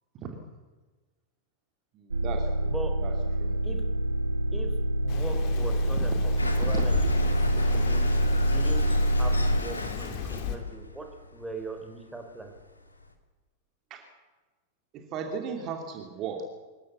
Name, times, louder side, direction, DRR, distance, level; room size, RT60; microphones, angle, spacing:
voice 1, 1.9-2.7 3.0-3.1 3.4-3.5 13.9-14.0 14.9-16.4, right 6 dB, 35° right, 3 dB, 2.8 m, -36 dB
sound 1, 2.1-9.6, equal, 80° right, 0.8 m, -26 dB
voice 2, 5.0-7.1 7.7-8.1 8.4-12.5, right 3 dB, 10° right, 4 dB, 4.1 m, -40 dB
Rain, 5.1-10.6, left 7 dB, 45° left, 2.5 m, -37 dB
sound 2, 6.4-13.1, left 2 dB, 80° left, 2.1 m, -37 dB
25.0 x 15.0 x 8.4 m, 1.3 s
figure-of-eight pair, 90°, 0 cm